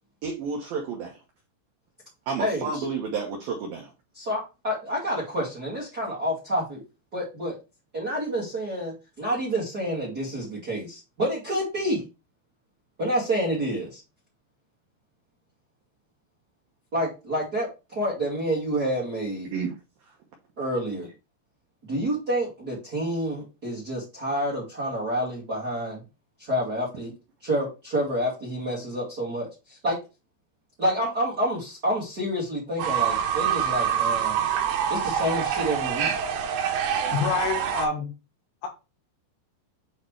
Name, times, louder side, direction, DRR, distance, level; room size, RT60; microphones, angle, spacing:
voice 1, 0.2-1.2 2.3-3.9 19.5-19.7, right 5 dB, 90° right, 1 dB, 2.0 m, -30 dB
voice 2, 4.1-6.8 7.1-7.6 7.9-12.0 13.0-14.0 16.9-19.5 20.6-21.1 21.8-26.0 26.4-27.1 27.4-30.0 30.8-34.4 34.9-36.1, equal, 40° right, -5 dB, 1.3 m, -28 dB
Fowl / Bird, 32.8-37.9, right 8 dB, 70° right, 3.1 m, -26 dB
voice 3, 37.1-38.1 38.6-38.7, left 5 dB, 80° left, 2 dB, 4.2 m, -27 dB
8.3 x 4.4 x 3.2 m, 0.28 s
omnidirectional pair, 5.9 m